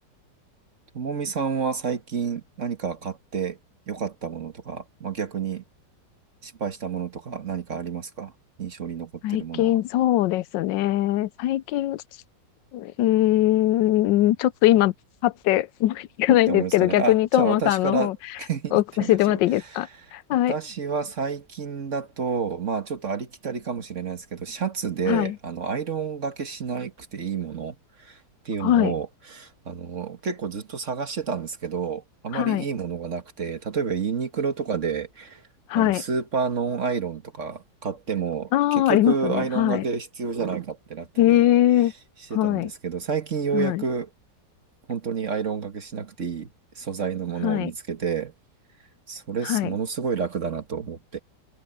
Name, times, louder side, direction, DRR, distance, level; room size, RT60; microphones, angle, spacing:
voice 1, 0.9-3.6 3.9-5.6 6.4-8.3 8.6-9.8 16.3-18.1 18.4-19.8 20.5-35.5 35.7-41.5 42.3-44.1 44.9-46.5 46.8-48.3 49.1-51.2, right 6 dB, 45° right, 1.7 m, -30 dB
voice 2, 9.2-12.0 12.7-14.9 15.2-18.2 18.7-20.5 25.1-25.4 28.6-28.9 32.3-32.6 35.7-36.0 38.5-39.8 41.2-41.9 42.3-42.7 43.5-43.8 47.4-47.7 49.4-49.7, left 14 dB, 85° left, 1.3 m, -21 dB
omnidirectional pair, 1.9 m